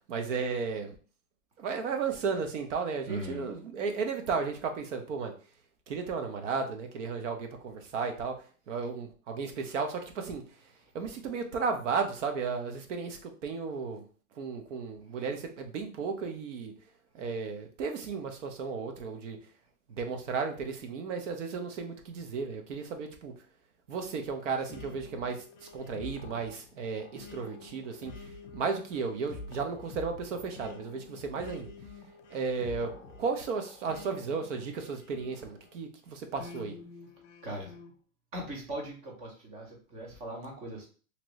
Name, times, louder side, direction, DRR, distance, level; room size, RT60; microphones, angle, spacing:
voice 1, 0.1-0.9 1.6-5.3 5.9-8.4 8.7-10.4 10.9-14.1 14.4-16.7 17.1-19.4 19.9-23.3 23.9-31.7 32.3-36.8, right 5 dB, 60° right, 6 dB, 0.8 m, -34 dB
voice 2, 3.1-3.5 37.4-37.7 38.3-40.9, right 1 dB, 15° right, 0 dB, 0.6 m, -40 dB
sound 1, 24.7-35.8 36.4-37.9, left 3 dB, 55° left, 0.8 m, -48 dB
3.0 x 2.6 x 3.0 m, 0.39 s
hypercardioid pair, 150°, 43 cm